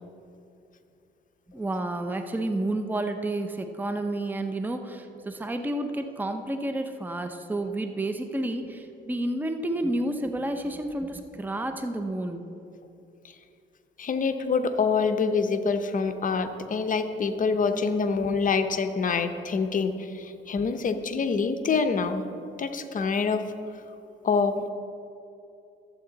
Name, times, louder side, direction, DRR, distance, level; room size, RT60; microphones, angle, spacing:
voice 1, 1.5-12.4, right 1 dB, 10° right, 6 dB, 0.6 m, -30 dB
voice 2, 14.0-22.3 22.6-23.4 24.2-24.6, left 5 dB, 40° left, 8 dB, 0.7 m, -26 dB
12.0 x 7.9 x 4.0 m, 2.7 s
cardioid pair, 90°, 20 cm